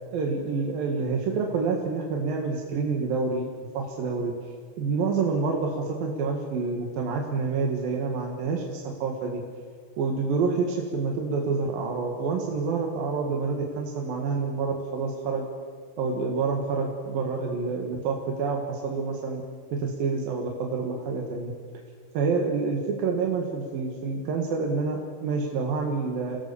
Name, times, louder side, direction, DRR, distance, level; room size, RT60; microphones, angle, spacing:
voice 1, 0.1-3.4 3.8-9.4 10.0-15.4 16.0-19.4 19.7-21.5 22.1-26.4, right 4 dB, 75° right, 1 dB, 3.6 m, -28 dB
28.5 x 17.5 x 7.0 m, 2.1 s
omnidirectional pair, 4.1 m